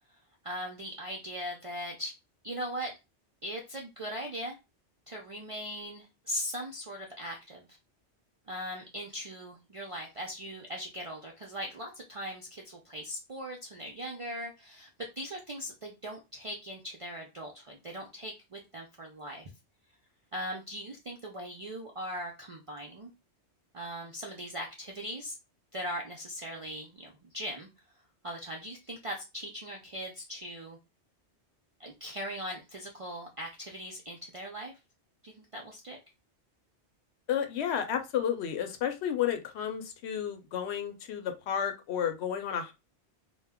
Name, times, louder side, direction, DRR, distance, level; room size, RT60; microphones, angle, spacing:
voice 1, 0.4-2.1 2.4-2.9 3.4-4.6 5.1-7.7 8.5-19.5 20.3-23.1 23.7-25.4 25.7-27.7 28.2-30.8 31.8-34.7 35.2-36.0, equal, 60° right, 0 dB, 0.3 m, -39 dB
voice 2, 37.3-42.7, left 9 dB, 70° left, 7 dB, 0.8 m, -32 dB
2.2 x 2.1 x 3.4 m, 0.26 s
omnidirectional pair, 1.2 m